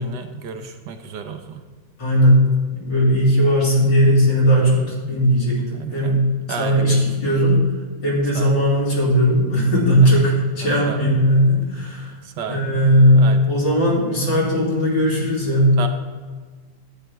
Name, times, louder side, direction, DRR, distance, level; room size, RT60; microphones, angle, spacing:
voice 1, 0.0-1.6 4.5-5.1 5.7-6.2 6.5-7.4 8.3-8.5 10.0-10.2 10.6-11.0 12.2-12.6 13.1-13.7 15.8-15.9, right 7 dB, 70° right, 6 dB, 1.4 m, -33 dB
voice 2, 2.0-2.4 2.7-6.2 6.6-7.6 8.0-12.1 12.5-15.7, equal, 75° left, -6 dB, 3.8 m, -17 dB
12.0 x 8.9 x 3.5 m, 1.4 s
omnidirectional pair, 2.0 m